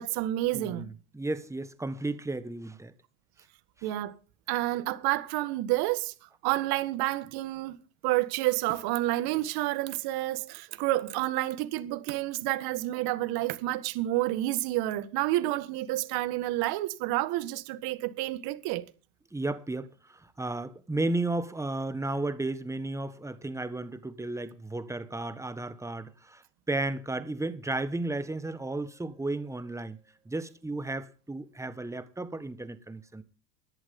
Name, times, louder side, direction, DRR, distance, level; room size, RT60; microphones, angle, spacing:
voice 1, 0.0-0.9 3.8-4.2 4.5-6.1 6.4-7.8 8.0-18.9, right 16 dB, 55° right, 1.8 m, -29 dB
voice 2, 0.5-2.9 19.3-30.0 30.2-33.2, right 2 dB, 5° right, 1.4 m, -34 dB
16.5 x 11.0 x 3.8 m
supercardioid pair, 100°, 43 cm